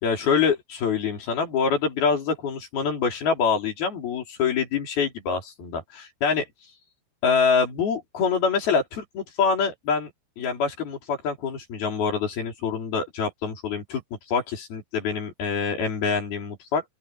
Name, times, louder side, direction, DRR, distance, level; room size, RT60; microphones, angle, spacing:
voice 1, 0.0-6.4 7.2-10.1 10.4-14.0 14.3-16.8, left 5 dB, 70° left, 6.0 m, -25 dB
open air
omnidirectional pair, 4.5 m